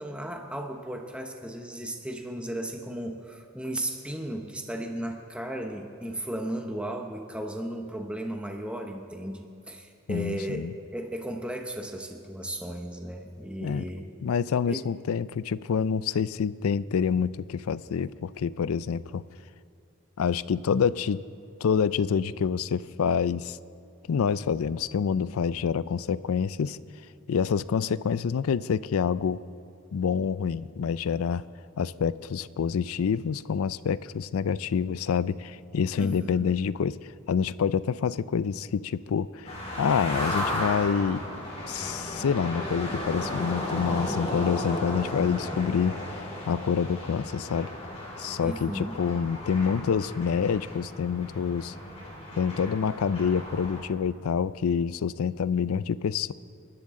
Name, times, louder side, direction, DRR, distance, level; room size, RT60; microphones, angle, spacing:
voice 1, 0.0-14.1 14.7-14.9 36.0-36.5 48.4-49.0, right 1 dB, 5° right, 3 dB, 0.9 m, -35 dB
voice 2, 10.1-10.7 13.6-13.9 14.2-19.2 20.2-21.2 21.6-23.6 24.1-26.8 27.3-29.4 29.9-31.4 31.8-37.0 37.3-39.5 39.8-41.2 41.7-47.7 48.2-51.7 52.4-56.3, left 6 dB, 90° left, 17 dB, 0.4 m, -27 dB
sound 1, 39.5-53.8, left 1 dB, 30° left, 3.8 m, -35 dB
28.0 x 11.5 x 3.7 m, 2.4 s
head